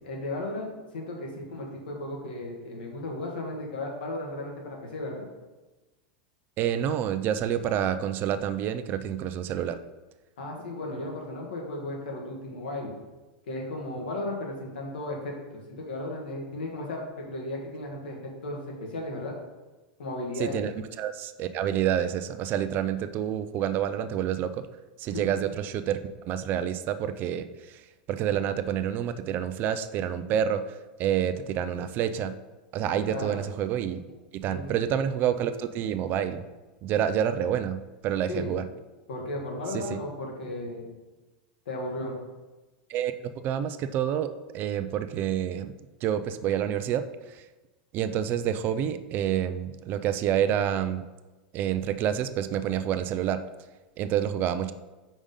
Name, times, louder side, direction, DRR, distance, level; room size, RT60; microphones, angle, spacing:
voice 1, 0.0-5.3 10.4-12.9 13.5-19.3 20.0-20.6 25.1-25.3 33.0-33.4 34.5-34.8 38.3-38.5 39.1-40.9 41.6-42.1, left 1 dB, 85° left, 0 dB, 1.5 m, -35 dB
voice 2, 6.6-9.8 20.4-20.7 21.0-24.7 25.0-27.8 28.1-32.3 32.7-34.0 34.3-36.5 36.8-38.6 39.7-40.0 42.9-45.8 46.0-47.4 47.9-51.0 51.5-53.4 54.0-54.7, right 9 dB, 40° right, 11 dB, 0.4 m, -28 dB
5.0 x 3.6 x 5.4 m, 1.2 s
hypercardioid pair, 115°, 5 cm